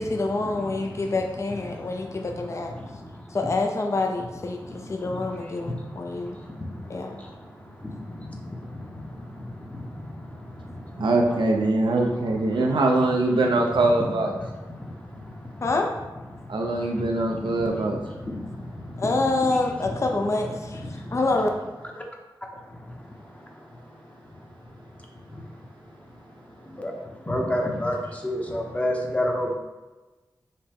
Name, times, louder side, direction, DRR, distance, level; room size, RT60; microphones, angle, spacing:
voice 1, 0.0-2.7 3.3-6.3 6.9-7.2 15.6-15.9 19.0-20.8 21.1-21.5, left 2 dB, 35° left, 2 dB, 0.4 m, -26 dB
voice 2, 11.0-14.3 16.5-18.0, right 2 dB, 85° right, 1 dB, 0.5 m, -22 dB
voice 3, 27.3-28.0 28.2-29.6, left 1 dB, 15° left, 0 dB, 0.8 m, -26 dB
5.6 x 2.1 x 3.4 m, 1.2 s
wide cardioid pair, 75°, 8 cm